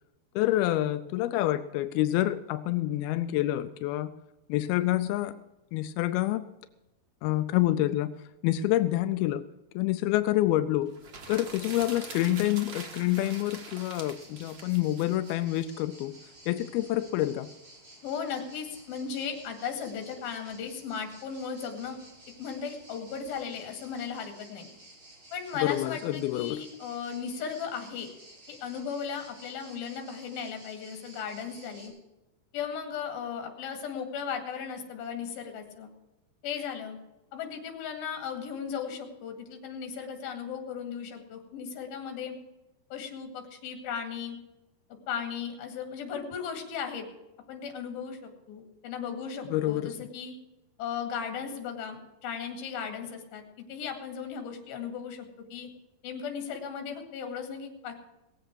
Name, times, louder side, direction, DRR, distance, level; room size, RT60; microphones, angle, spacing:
voice 1, 0.4-4.1 4.5-5.3 5.7-6.4 7.2-8.1 8.4-9.4 9.8-10.9 11.3-16.2 16.5-17.5 25.6-26.6 49.5-49.9, left 15 dB, 85° left, 11 dB, 2.2 m, -27 dB
sound 1, 10.9-15.6, right 4 dB, 70° right, 1.1 m, -44 dB
sound 2, 13.2-31.9, right 1 dB, 30° right, 4.7 m, -53 dB
voice 2, 18.0-22.0 22.4-24.7 25.3-28.1 28.5-31.9 32.5-35.9 36.4-37.0 37.3-42.4 42.9-44.4 45.1-47.1 47.5-50.3 50.8-53.4 53.7-55.7 56.0-58.0, left 7 dB, 60° left, 5 dB, 3.8 m, -36 dB
19.5 x 8.0 x 6.3 m, 0.99 s
omnidirectional pair, 5.0 m